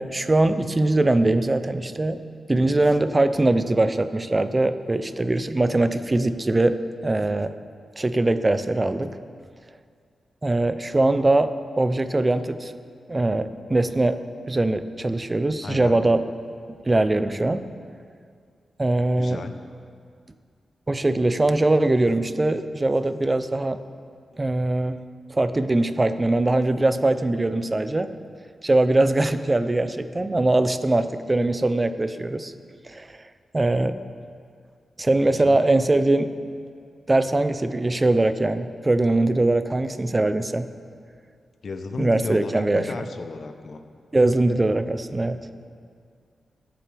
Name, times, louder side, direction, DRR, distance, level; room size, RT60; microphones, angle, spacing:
voice 1, 0.0-2.2 2.5-7.6 8.0-9.2 10.4-12.7 13.1-14.2 14.5-16.2 16.7-17.6 18.8-19.4 20.9-23.8 24.4-25.0 25.3-28.1 28.6-32.5 32.8-34.0 35.0-36.3 37.1-40.7 42.0-42.9 44.1-45.4, right 2 dB, 25° right, 11 dB, 0.6 m, -22 dB
voice 2, 15.6-16.0 19.2-19.6 35.3-35.6 41.6-43.8, left 4 dB, 65° left, 7 dB, 0.9 m, -34 dB
22.0 x 7.6 x 3.5 m, 2.2 s
cardioid pair, 75°, 0 cm